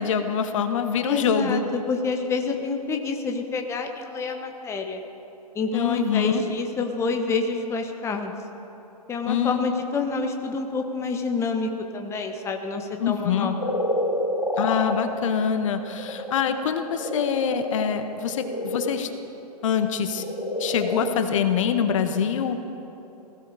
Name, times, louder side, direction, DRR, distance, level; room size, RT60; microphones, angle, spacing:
voice 1, 0.0-1.6 5.7-6.4 9.2-9.6 13.0-13.5 14.6-19.1 19.6-20.2 20.6-22.6, left 7 dB, 50° left, 8 dB, 1.3 m, -24 dB
voice 2, 1.0-5.0 5.5-8.3 9.1-13.9, left 4 dB, 15° left, 4 dB, 1.0 m, -28 dB
sound 1, 13.6-19.0 19.9-21.3, left 1 dB, 85° left, 3.5 m, -29 dB
18.5 x 16.0 x 4.9 m, 3.0 s
figure-of-eight pair, 115°, 21 cm